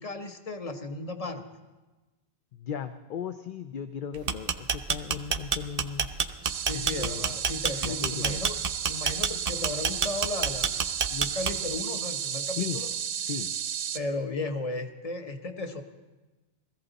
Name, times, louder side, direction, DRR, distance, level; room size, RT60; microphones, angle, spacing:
voice 1, 0.0-1.4 6.6-8.6 8.9-12.9 13.9-15.8, left 2 dB, 35° left, 7 dB, 1.1 m, -35 dB
voice 2, 2.5-6.1 6.7-7.4 7.8-8.4 12.5-12.8 13.2-13.5, left 8 dB, 55° left, 8 dB, 0.7 m, -36 dB
sound 1, 4.1-11.8, right 6 dB, 45° right, 0.6 m, -28 dB
sound 2, 6.4-14.0, right 9 dB, 80° right, 1.0 m, -33 dB
20.5 x 14.5 x 4.0 m, 1.2 s
omnidirectional pair, 1.1 m